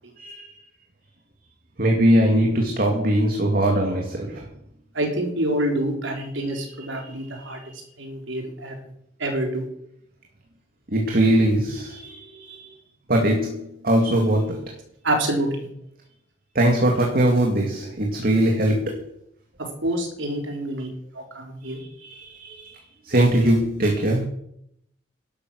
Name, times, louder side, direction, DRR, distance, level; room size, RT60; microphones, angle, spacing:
voice 1, 0.2-0.6 1.8-4.5 6.5-6.6 6.9-7.7 10.9-12.7 13.1-14.7 16.5-19.1 21.6-24.2, right 1 dB, 55° right, 2.3 m, -22 dB
voice 2, 4.9-7.6 8.0-8.7 9.2-9.6 15.0-15.7 19.8-21.8, right 1 dB, 85° right, 4.3 m, -27 dB
12.5 x 12.0 x 6.4 m
head